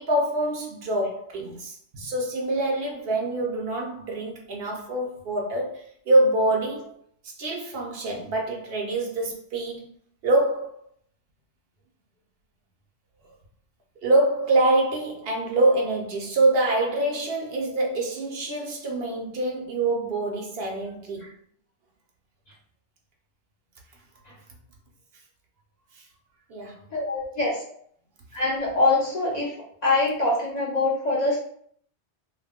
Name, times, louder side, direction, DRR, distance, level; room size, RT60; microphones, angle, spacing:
voice 1, 0.0-6.9 7.4-9.8 10.2-10.8 14.0-21.2 26.5-26.8, right 2 dB, 65° right, 0.8 m, -25 dB
voice 2, 26.9-27.6 28.3-29.5 29.8-31.4, left 2 dB, 50° left, 0.5 m, -23 dB
2.3 x 2.1 x 3.4 m
omnidirectional pair, 1.2 m